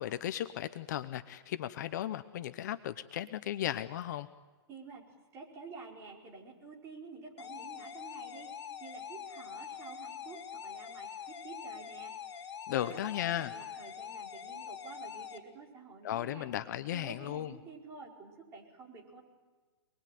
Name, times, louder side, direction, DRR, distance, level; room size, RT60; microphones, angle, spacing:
voice 1, 0.0-4.3 12.7-13.5 16.0-17.5, left 12 dB, 40° left, 11 dB, 0.9 m, -36 dB
voice 2, 4.7-5.0 5.3-16.5 16.9-19.2, right 4 dB, 20° right, -1 dB, 4.9 m, -50 dB
sound 1, 7.4-15.4, left 8 dB, 80° left, 3.2 m, -44 dB
27.5 x 21.5 x 9.3 m, 1.3 s
hypercardioid pair, 165°, 14 cm